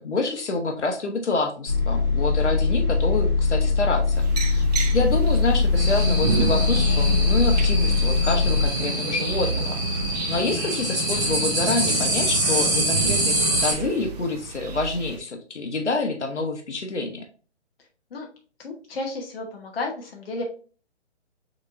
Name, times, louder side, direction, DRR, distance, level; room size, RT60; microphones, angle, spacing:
voice 1, 0.0-4.6 4.9-9.8 10.3-17.3, left 3 dB, 75° left, 4 dB, 1.3 m, -27 dB
sound 1, 1.7-8.7, left 4 dB, 40° left, 1.9 m, -21 dB
sound 2, 4.1-15.2, right 6 dB, 35° right, 0.6 m, -32 dB
sound 3, 5.7-13.7, right 1 dB, 15° right, 1.3 m, -25 dB
voice 2, 18.6-20.4, left 2 dB, 55° left, 1 dB, 1.1 m, -32 dB
6.4 x 3.2 x 2.4 m, 0.38 s
hypercardioid pair, 155°, 35 cm